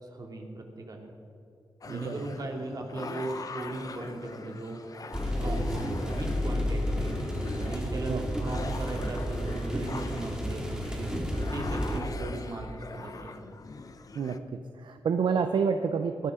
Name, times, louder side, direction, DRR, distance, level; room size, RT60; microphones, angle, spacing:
voice 1, 0.0-1.1 1.8-4.8 5.4-7.2 7.6-11.1 11.5-13.3, right 2 dB, 50° right, 1 dB, 2.5 m, -38 dB
sound 1, 1.8-14.4, left 4 dB, 45° left, 0.9 m, -43 dB
voice 2, 1.9-2.2 8.1-8.2 14.1-16.3, right 6 dB, 75° right, 8 dB, 0.6 m, -29 dB
sound 2, 5.1-12.0, equal, 10° right, 2.4 m, -31 dB
19.0 x 12.0 x 3.7 m, 2.8 s
cardioid pair, 70°, 8 cm